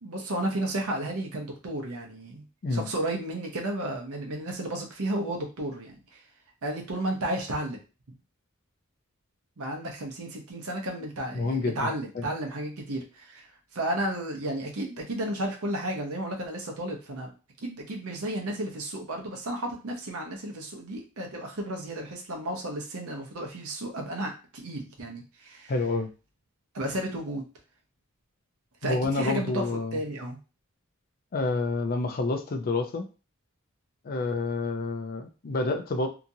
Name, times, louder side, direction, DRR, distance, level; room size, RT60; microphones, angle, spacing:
voice 1, 0.0-2.4 2.7-6.2 6.6-7.8 9.6-17.3 17.6-25.7 26.7-27.4 28.8-29.6 29.9-30.4, right 1 dB, 80° right, 1 dB, 0.8 m, -33 dB
voice 2, 11.3-11.9 12.1-12.3 25.7-26.1 28.8-30.0 31.3-33.1 34.0-36.1, left 3 dB, 45° left, 5 dB, 0.4 m, -28 dB
2.8 x 2.5 x 2.7 m, 0.33 s
head